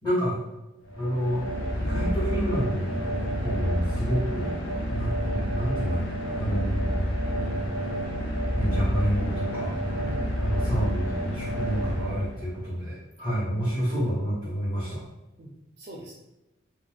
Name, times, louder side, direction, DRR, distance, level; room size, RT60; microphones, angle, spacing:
voice 1, 0.0-0.4 0.9-3.0 3.4-4.5 4.9-7.2 8.6-10.1 10.4-15.0, equal, 20° left, -14 dB, 1.1 m, -29 dB
sound 1, 0.9-12.7, equal, 70° left, 0.6 m, -29 dB
voice 2, 10.0-10.4 13.7-13.8 15.4-16.1, right 1 dB, 40° right, -3 dB, 0.4 m, -43 dB
2.4 x 2.1 x 3.2 m, 0.97 s
head